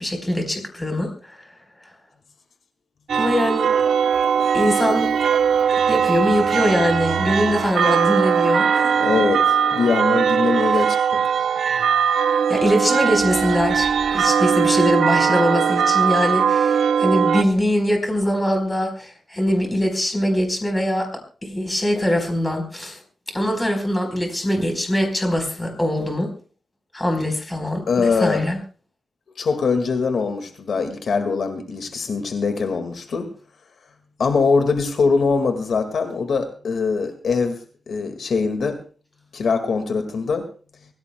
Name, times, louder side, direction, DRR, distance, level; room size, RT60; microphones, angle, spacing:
voice 1, 0.0-1.5 3.1-3.7 4.5-5.1 5.9-8.9 12.5-21.1 21.4-23.0 23.3-26.3 26.9-28.6, left 1 dB, 15° left, 4 dB, 4.4 m, -22 dB
sound 1, 3.1-17.4, right 7 dB, 90° right, 0.9 m, -20 dB
sound 2, 3.7-10.9, right 5 dB, 70° right, 2.9 m, -39 dB
voice 2, 9.0-11.2 27.9-28.4 29.4-33.3 34.2-37.6 37.9-38.8 39.3-40.5, left 4 dB, 70° left, 6 dB, 2.0 m, -22 dB
25.0 x 17.0 x 2.3 m, 0.40 s
wide cardioid pair, 125°, 0 cm